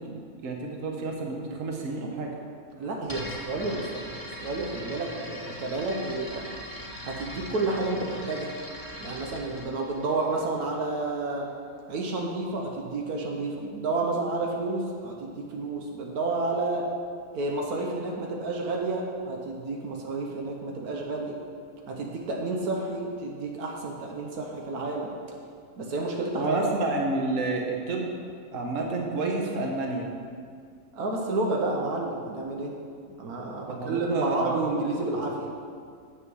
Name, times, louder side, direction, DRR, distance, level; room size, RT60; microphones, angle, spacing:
voice 1, 0.0-2.3 26.3-28.1 28.5-30.1 33.7-34.6, right 2 dB, 60° right, 0 dB, 1.4 m, -29 dB
voice 2, 2.8-6.5 7.0-8.5 9.0-11.5 11.9-16.8 17.3-21.3 21.9-25.1 25.8-26.6 30.9-32.7 33.1-35.5, right 2 dB, 80° right, 0 dB, 1.4 m, -30 dB
sound 1, 3.1-10.9, equal, 15° left, 1.2 m, -41 dB
7.9 x 6.3 x 6.2 m, 2.2 s
omnidirectional pair, 1.6 m